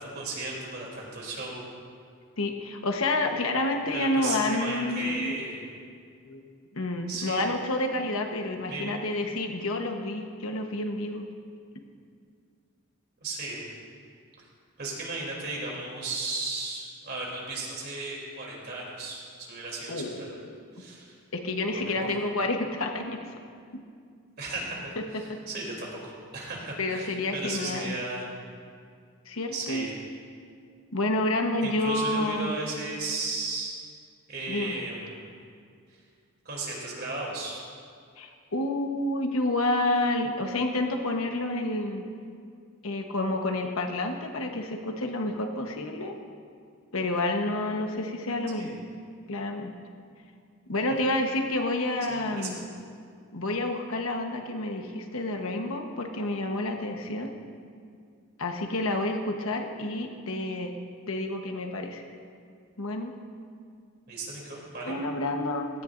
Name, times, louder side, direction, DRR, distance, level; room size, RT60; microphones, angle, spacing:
voice 1, 0.0-1.6 3.9-5.6 7.1-7.5 8.7-8.9 13.2-13.6 14.4-14.5 14.8-20.3 20.8-21.1 21.7-22.1 24.4-28.3 29.5-29.9 31.6-33.8 34.3-35.3 35.9-36.0 36.4-37.6 48.6-48.7 52.1-52.6 64.1-65.0, right 2 dB, 50° right, -3 dB, 3.1 m, -35 dB
voice 2, 2.4-5.4 6.2-6.4 6.7-11.3 19.9-20.6 21.3-23.3 25.3-25.4 26.8-28.0 29.3-29.9 30.9-32.5 34.5-34.8 38.2-42.0 42.8-46.2 46.9-48.8 49.3-49.7 50.7-52.6 53.3-57.3 58.4-60.7 61.1-62.0 62.8-63.1 64.9-65.8, left 2 dB, 75° left, 4 dB, 1.1 m, -29 dB
17.0 x 13.5 x 2.6 m, 2.2 s
head